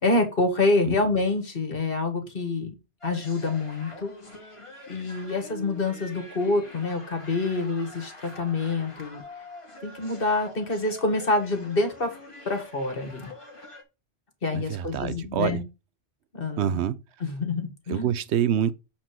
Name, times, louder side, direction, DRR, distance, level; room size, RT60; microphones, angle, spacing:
voice 1, 0.0-2.7 3.0-4.1 4.9-9.2 9.8-12.2 12.5-13.3 14.4-15.6 16.3-16.8 17.2-18.1, left 3 dB, 55° left, 1.9 m, -26 dB
sound 1, 3.0-13.8, left 1 dB, 30° left, 1.6 m, -45 dB
voice 2, 14.5-15.6 16.6-17.0 17.9-18.7, right 9 dB, 80° right, 0.9 m, -26 dB
7.6 x 4.4 x 4.6 m
omnidirectional pair, 1.1 m